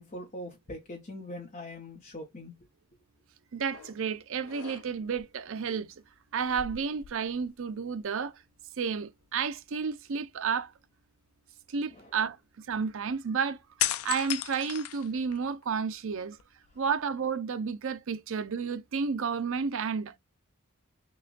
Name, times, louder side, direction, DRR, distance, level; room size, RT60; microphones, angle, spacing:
voice 1, 0.0-2.5 11.9-12.1, left 1 dB, 35° left, 0.8 m, -42 dB
voice 2, 3.5-6.0 6.3-8.4 8.8-10.7 11.7-16.4 16.8-20.2, right 6 dB, 60° right, 0.5 m, -31 dB
sound 1, 3.7-4.0 4.4-5.2 6.4-7.7 8.0-8.1 13.8-15.6 16.1-17.0, left 13 dB, 85° left, 0.4 m, -36 dB
6.0 x 2.2 x 2.4 m
head